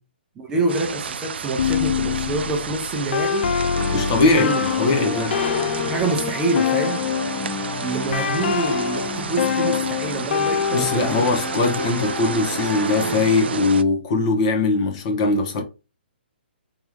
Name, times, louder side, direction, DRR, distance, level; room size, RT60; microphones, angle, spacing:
voice 1, 0.4-3.6 4.2-4.6 5.0-5.3 5.9-7.1 7.8-11.3, right 2 dB, 10° right, 0.6 m, -26 dB
sound 1, 0.7-13.8, right 6 dB, 75° right, 0.4 m, -31 dB
sound 2, 1.6-7.5 8.1-11.3, left 7 dB, 65° left, 0.4 m, -25 dB
sound 3, 3.7-13.2, left 3 dB, 20° left, 1.3 m, -31 dB
voice 2, 3.9-5.4 10.7-15.6, left 3 dB, 35° left, 1.1 m, -21 dB
3.7 x 2.9 x 3.2 m
hypercardioid pair, 155°, 6 cm